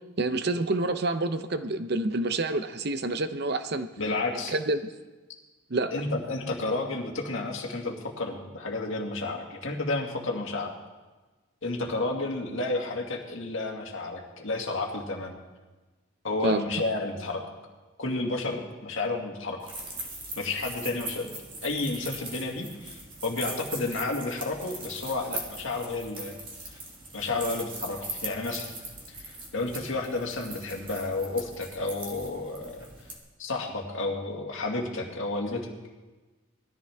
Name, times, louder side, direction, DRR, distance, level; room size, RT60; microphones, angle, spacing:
voice 1, 0.2-3.9 4.5-4.8 5.7-5.9 16.4-16.6, right 2 dB, 50° right, 10 dB, 0.7 m, -27 dB
voice 2, 4.0-4.5 5.9-10.7 11.6-15.4 16.2-17.4 18.0-19.6 20.4-26.4 27.1-28.7 29.1-32.9 33.4-35.7, left 2 dB, 65° left, 1 dB, 1.9 m, -31 dB
sound 1, 19.6-33.2, right 2 dB, 25° right, 1.8 m, -40 dB
19.5 x 13.5 x 3.5 m, 1.2 s
head